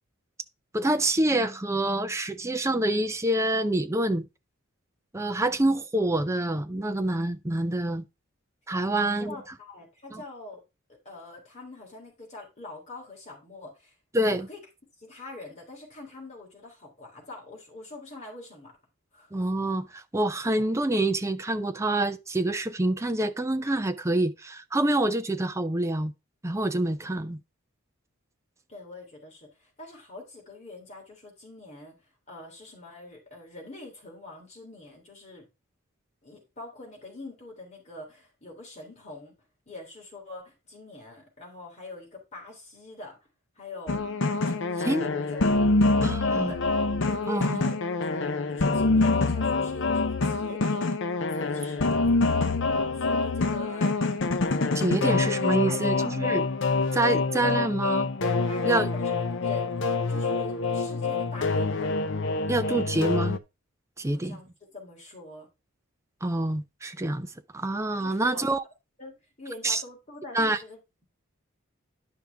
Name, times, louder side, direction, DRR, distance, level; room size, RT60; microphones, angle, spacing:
voice 1, 0.7-4.2 5.1-8.0 8.7-9.4 10.1-10.2 14.1-14.5 19.3-26.1 26.4-27.4 44.8-45.1 46.0-46.5 47.3-47.7 54.7-56.4 56.9-58.1 58.6-58.9 62.5-63.4 64.0-64.4 66.2-67.3 67.5-68.6 69.6-69.8 70.3-70.6, right 1 dB, 15° right, 0.5 m, -26 dB
voice 2, 8.9-10.6 11.0-13.9 14.3-14.6 15.0-18.8 19.1-19.3 28.7-31.9 32.3-35.5 36.2-39.3 39.7-43.2 43.5-44.1 44.3-46.6 47.1-50.8 51.3-51.9 52.9-54.0 54.5-54.6 55.0-55.3 55.6-56.1 58.5-59.1 59.4-61.9 64.1-65.5 67.9-68.4 69.0-71.0, left 2 dB, 35° left, 3.4 m, -44 dB
sound 1, 43.9-63.4, left 3 dB, 60° left, 0.7 m, -26 dB
10.5 x 5.7 x 3.5 m
head